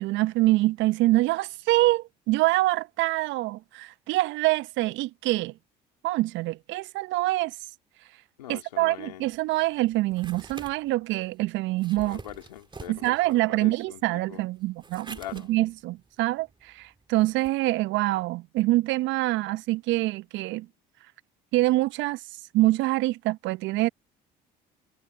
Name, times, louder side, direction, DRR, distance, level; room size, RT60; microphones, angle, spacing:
voice 1, 0.0-5.5 6.0-7.5 8.5-12.2 12.9-20.7 21.5-22.2 22.5-23.9, right 18 dB, 65° right, 1.1 m, -25 dB
voice 2, 8.4-9.3 12.0-14.4 15.1-15.5, left 13 dB, 85° left, 3.8 m, -42 dB
open box, 9.3-17.5, right 4 dB, 20° right, 2.6 m, -48 dB
hypercardioid pair, 60°, 21 cm